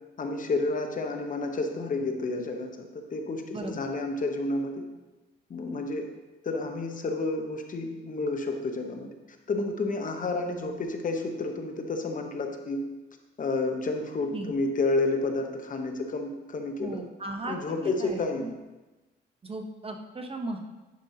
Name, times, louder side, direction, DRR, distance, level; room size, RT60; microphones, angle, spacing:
voice 1, 0.2-4.8 5.5-6.1 6.4-9.1 9.5-12.9 13.4-17.0 17.5-18.5, left 3 dB, 40° left, 4 dB, 0.9 m, -30 dB
voice 2, 3.5-3.8 14.3-14.5 16.8-18.5 19.4-20.6, right 2 dB, 30° right, 4 dB, 0.8 m, -36 dB
10.5 x 5.2 x 2.8 m, 1.1 s
cardioid pair, 90°, 20 cm